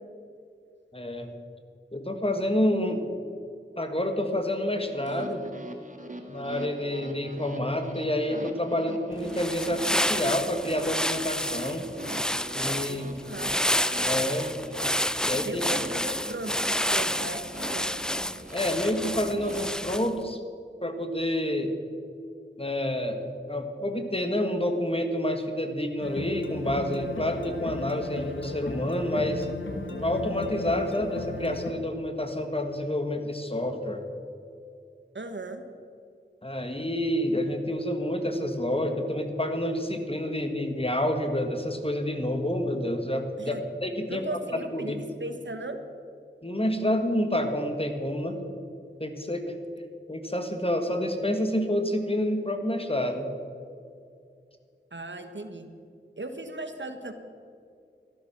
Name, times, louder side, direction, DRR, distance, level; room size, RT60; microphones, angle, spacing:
voice 1, 0.9-1.3 1.9-3.0 3.8-5.4 6.3-11.9 12.5-13.1 14.0-14.5 15.2-15.6 18.5-20.4 20.8-21.8 22.6-29.5 30.0-34.0 36.4-43.6 43.8-44.2 44.7-45.0 46.4-48.4 49.0-49.5 50.1-53.3, left 1 dB, 30° left, 6 dB, 1.6 m, -28 dB
sound 1, 4.8-19.6, right 1 dB, 40° right, 1.7 m, -42 dB
sound 2, 9.2-20.2, equal, 5° left, 0.4 m, -29 dB
voice 2, 12.9-13.6 15.4-17.4 17.7-18.0 35.1-35.6 43.4-43.6 44.1-45.8 54.9-55.7 56.2-57.1, right 2 dB, 75° right, 7 dB, 1.2 m, -37 dB
sound 3, 26.0-31.7, left 2 dB, 85° left, 1.3 m, -36 dB
13.5 x 12.5 x 6.0 m, 2.4 s
wide cardioid pair, 40°, 19 cm